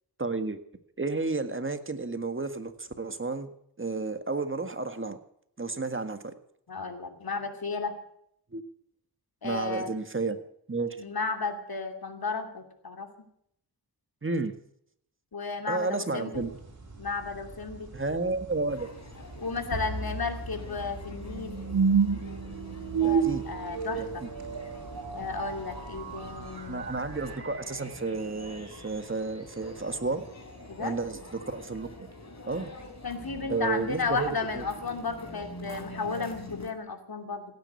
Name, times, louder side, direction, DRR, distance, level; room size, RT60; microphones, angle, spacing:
voice 1, 0.2-0.6 1.0-3.5 3.8-5.2 5.6-6.3 8.5-8.6 9.4-10.4 10.7-11.0 14.2-14.5 15.7-16.5 17.9-18.9 23.0-23.4 24.0-24.3 26.7-30.2 30.8-31.9 32.5-32.7 33.5-34.6, right 3 dB, 30° right, 8 dB, 1.7 m, -31 dB
voice 2, 6.7-8.0 9.4-9.9 11.0-13.3 15.3-16.5 17.0-17.9 19.4-21.6 23.0-24.2 25.1-26.8 30.7-31.0 33.0-37.4, left 4 dB, 65° left, 5 dB, 2.8 m, -33 dB
sound 1, 16.3-27.4, right 3 dB, 45° right, 5.6 m, -48 dB
sound 2, 18.7-36.7, left 1 dB, 45° left, 3.8 m, -46 dB
sound 3, 19.7-28.8, right 6 dB, 70° right, 2.0 m, -31 dB
17.0 x 9.7 x 8.3 m, 0.71 s
wide cardioid pair, 60°, 40 cm